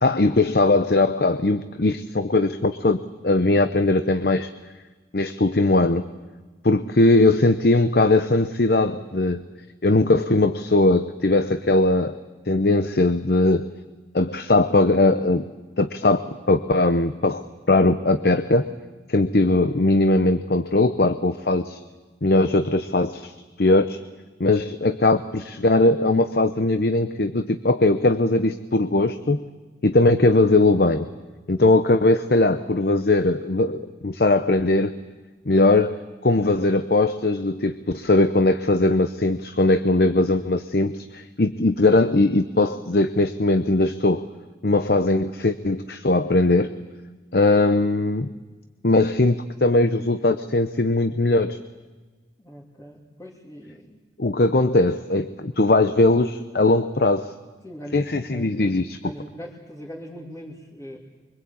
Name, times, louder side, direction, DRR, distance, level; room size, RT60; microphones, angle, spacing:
voice 1, 0.0-4.5 5.1-6.0 6.6-9.4 9.8-12.1 12.5-13.7 14.1-15.4 15.8-17.4 17.7-18.7 19.1-21.8 22.2-23.3 23.6-24.0 24.4-29.4 29.8-31.1 31.5-34.9 35.5-36.0 36.2-44.2 44.6-46.7 47.3-48.3 48.8-51.6 54.2-57.3 57.9-59.0, left 2 dB, 60° left, 10 dB, 0.9 m, -20 dB
voice 2, 52.4-54.0 57.6-58.8 59.0-61.0, equal, 20° left, -4 dB, 3.1 m, -40 dB
25.0 x 24.0 x 8.6 m, 1.3 s
head